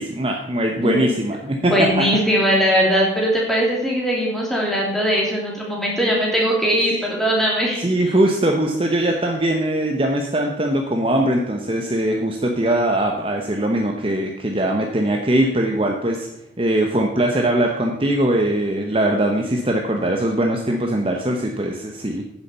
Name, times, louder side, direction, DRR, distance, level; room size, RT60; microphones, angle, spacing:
voice 1, 0.0-2.1 6.9-7.1 7.8-16.3 16.6-22.2, right 1 dB, 30° right, 2 dB, 0.9 m, -21 dB
voice 2, 0.7-1.1 1.6-7.8, equal, ahead, -3 dB, 2.9 m, -20 dB
9.9 x 7.1 x 6.8 m, 0.88 s
head